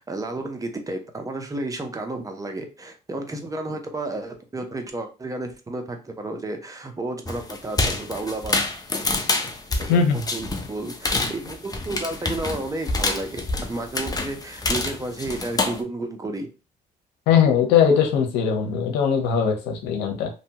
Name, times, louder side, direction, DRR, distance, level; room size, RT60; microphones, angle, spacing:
voice 1, 0.0-8.6 9.8-13.4 13.7-16.5, right 2 dB, 20° right, 4 dB, 0.6 m, -32 dB
sound 1, 7.2-15.8, left 3 dB, 20° left, 0.6 m, -27 dB
voice 2, 9.9-10.2 17.3-20.3, left 7 dB, 90° left, 4 dB, 0.7 m, -20 dB
2.7 x 2.2 x 2.8 m, 0.31 s
cardioid pair, 80°, 17 cm